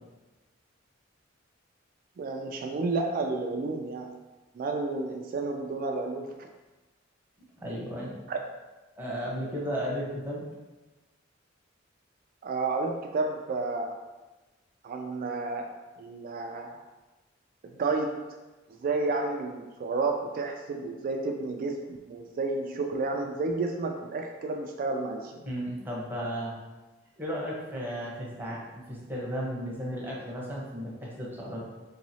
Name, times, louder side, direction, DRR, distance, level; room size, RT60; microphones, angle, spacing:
voice 1, 2.2-4.1 4.5-6.5 8.3-8.4 12.4-14.0 14.8-16.8 17.6-18.4 18.7-25.4, right 3 dB, 45° right, 3 dB, 0.3 m, -31 dB
voice 2, 7.6-8.1 9.0-10.4 25.4-26.6 27.2-31.6, equal, 10° right, -5 dB, 0.9 m, -34 dB
4.6 x 3.0 x 2.7 m, 1.1 s
head